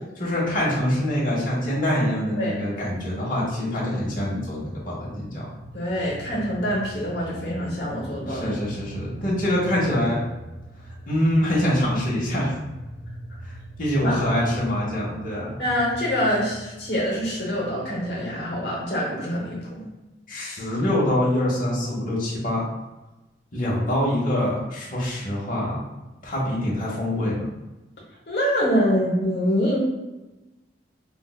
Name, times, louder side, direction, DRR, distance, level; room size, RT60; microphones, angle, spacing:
voice 1, 0.2-5.4 8.3-10.2 11.1-12.5 13.4-13.5 13.8-15.5 20.3-22.6 23.5-25.8 26.2-27.5, left 1 dB, 50° left, -6 dB, 0.8 m, -24 dB
sound 1, 4.5-18.9, right 1 dB, 50° right, 0.6 m, -41 dB
voice 2, 5.7-8.6 14.0-14.2 15.6-19.9 28.3-29.8, equal, 75° left, -4 dB, 0.8 m, -25 dB
4.4 x 2.1 x 2.2 m, 1.0 s
head